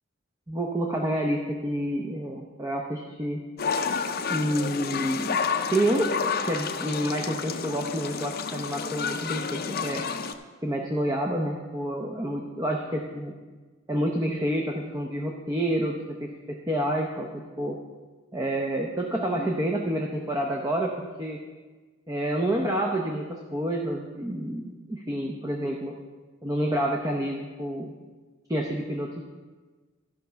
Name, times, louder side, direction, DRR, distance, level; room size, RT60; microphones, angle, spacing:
voice 1, 0.5-3.4 4.3-5.4 5.7-6.1 6.5-10.0 10.6-13.3 13.9-17.3 17.6-17.8 18.3-20.9 21.2-21.4 22.1-25.9 26.4-27.9 28.5-29.2, right 1 dB, 15° right, 1 dB, 0.7 m, -28 dB
sound 1, 3.6-10.3, left 5 dB, 50° left, 0.6 m, -30 dB
13.0 x 5.4 x 5.7 m, 1.4 s
head